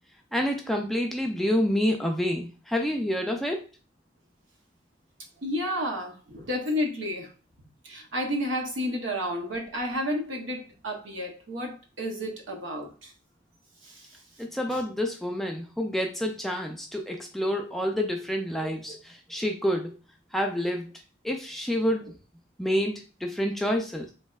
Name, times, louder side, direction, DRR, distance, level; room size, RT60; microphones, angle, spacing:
voice 1, 0.3-3.6 14.4-20.0 20.3-20.9 21.2-22.1 22.6-22.9 23.2-24.1, equal, ahead, 0.3 m, -28 dB
voice 2, 5.4-7.3 7.8-12.9 18.6-18.7, equal, 90° right, 0.8 m, -31 dB
3.2 x 2.6 x 2.3 m
head